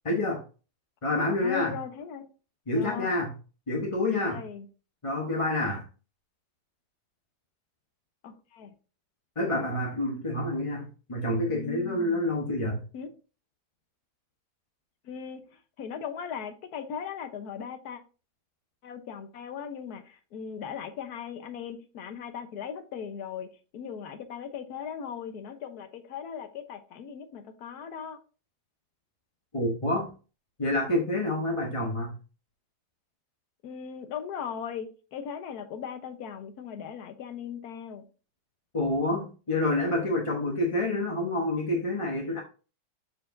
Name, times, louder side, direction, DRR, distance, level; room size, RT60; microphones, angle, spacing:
voice 1, 0.0-0.4 1.0-1.8 2.7-3.3 3.7-4.4 5.0-5.8 9.4-12.8 29.5-30.1 30.6-32.1 38.7-42.4, left 1 dB, 25° left, 0.9 m, -28 dB
voice 2, 1.4-2.2 2.7-3.1 4.3-4.7 8.2-8.7 11.5-12.3 12.9-13.1 15.0-15.4 15.8-18.0 18.8-28.2 33.6-38.0, left 7 dB, 70° left, 1.4 m, -38 dB
7.2 x 6.8 x 2.6 m
omnidirectional pair, 1.8 m